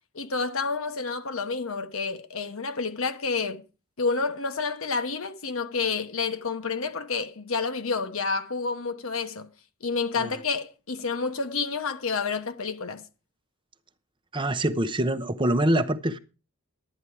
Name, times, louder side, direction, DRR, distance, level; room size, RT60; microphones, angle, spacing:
voice 1, 0.1-3.6 4.0-9.5 9.8-13.0, left 4 dB, 65° left, 1.1 m, -29 dB
voice 2, 14.3-16.2, right 1 dB, 20° right, 0.8 m, -25 dB
11.0 x 10.0 x 4.6 m
head